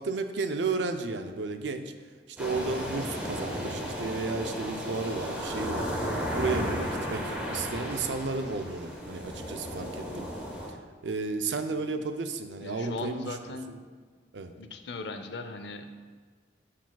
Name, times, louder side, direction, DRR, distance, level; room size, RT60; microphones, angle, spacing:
voice 1, 0.0-1.9 2.3-10.3 10.7-10.8 11.0-13.4 13.7-13.8 14.3-14.5, right 3 dB, 85° right, 7 dB, 0.5 m, -33 dB
sound 1, 2.4-10.7, equal, 5° right, 1.0 m, -34 dB
voice 2, 12.6-13.7 14.6-15.8, left 2 dB, 70° left, 7 dB, 0.6 m, -38 dB
11.5 x 4.9 x 2.3 m, 1.5 s
head